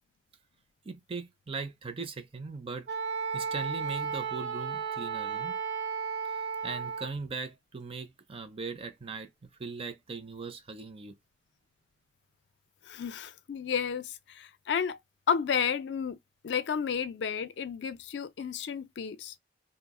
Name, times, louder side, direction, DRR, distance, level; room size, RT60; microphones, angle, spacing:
voice 1, 0.8-2.9 3.3-5.6 6.3-11.2, right 4 dB, 30° right, 0.4 m, -39 dB
Wind instrument woodwind instrument, 2.9-7.1, right 6 dB, 75° right, 0.7 m, -34 dB
voice 2, 12.9-15.0 15.3-16.2 16.4-19.3, left 7 dB, 75° left, 0.4 m, -32 dB
2.3 x 2.0 x 3.5 m
head